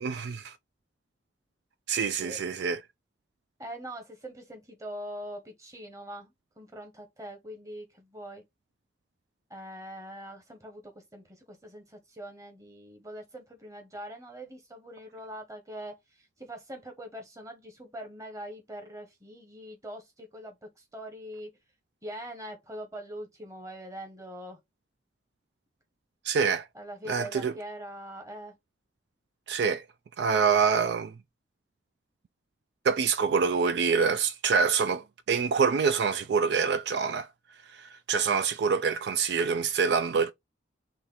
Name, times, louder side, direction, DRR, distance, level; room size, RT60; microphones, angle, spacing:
voice 1, 0.0-0.5 1.9-2.8 26.2-26.7 27.1-27.5 29.5-29.8 30.2-31.1 32.8-37.3 37.7-40.3, right 5 dB, 65° right, 0.3 m, -26 dB
voice 2, 3.6-8.4 9.5-21.5 22.0-24.6 26.7-28.5, equal, 15° right, 1.2 m, -43 dB
4.4 x 3.1 x 3.7 m
head